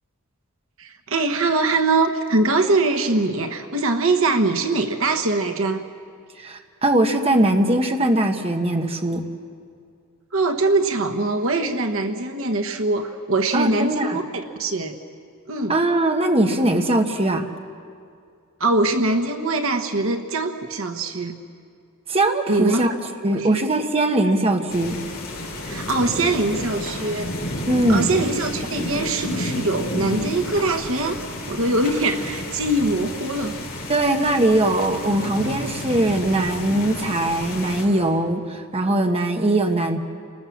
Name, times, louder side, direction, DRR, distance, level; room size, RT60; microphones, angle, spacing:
voice 1, 0.8-5.8 10.3-14.9 15.5-15.8 18.6-21.4 22.5-22.9 23.3-23.6 25.5-27.3 27.9-31.2 31.5-33.6, right 2 dB, 65° right, 5 dB, 1.3 m, -22 dB
voice 2, 6.4-9.3 13.5-14.2 15.7-17.5 22.1-22.9 23.2-25.0 27.7-28.1 33.9-40.0, right 1 dB, 25° right, 4 dB, 1.3 m, -21 dB
sound 1, 24.7-37.9, left 1 dB, 45° left, 5.9 m, -31 dB
28.5 x 20.0 x 7.3 m, 2.3 s
head